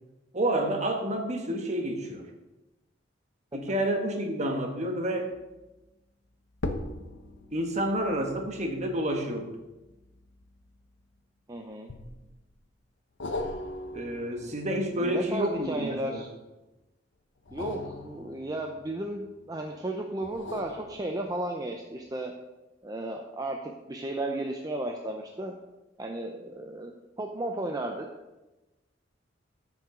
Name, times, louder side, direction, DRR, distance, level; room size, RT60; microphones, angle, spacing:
voice 1, 0.3-2.3 3.5-5.3 7.5-9.5 13.9-16.2, right 1 dB, 40° right, 4 dB, 1.3 m, -29 dB
sound 1, 5.3-5.7 6.5-11.2 11.9-12.5 13.2-16.2 17.4-19.5 20.2-21.6 22.1-22.2, left 2 dB, 70° left, 0.8 m, -40 dB
voice 2, 11.5-11.9 15.0-16.3 17.5-22.3 22.8-25.6 26.0-26.9 27.2-28.0, right 1 dB, 20° right, 2 dB, 0.6 m, -34 dB
13.5 x 6.2 x 3.8 m, 1.0 s
head